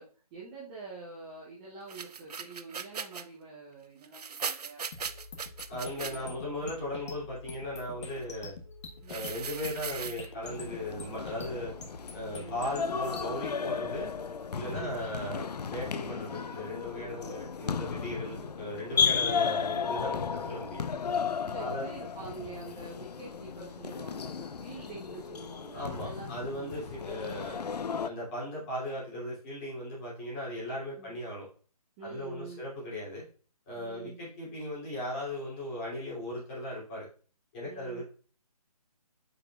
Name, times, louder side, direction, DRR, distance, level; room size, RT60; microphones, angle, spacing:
voice 1, 0.0-5.1 5.9-6.3 6.6-6.7 9.0-9.3 12.4-12.7 14.6-15.0 21.4-26.8 31.0-31.1 32.0-32.7 33.7-34.2 37.6-38.0, right 4 dB, 15° right, -6 dB, 0.8 m, -46 dB
sound 1, 1.9-3.2 4.0-6.1 9.1-10.3, right 6 dB, 80° right, 0.6 m, -38 dB
sound 2, 4.9-13.5, left 4 dB, 45° left, 1.3 m, -46 dB
voice 2, 5.7-8.5 9.1-11.7 12.1-14.1 14.5-20.9 21.6-21.9 25.7-27.6 28.0-31.5 32.0-33.2 33.7-37.1 37.5-38.0, left 1 dB, 20° left, -6 dB, 2.9 m, -37 dB
sound 3, 10.4-28.1, left 6 dB, 85° left, 0.5 m, -34 dB
8.4 x 5.2 x 2.4 m, 0.39 s
hypercardioid pair, 160°, 20 cm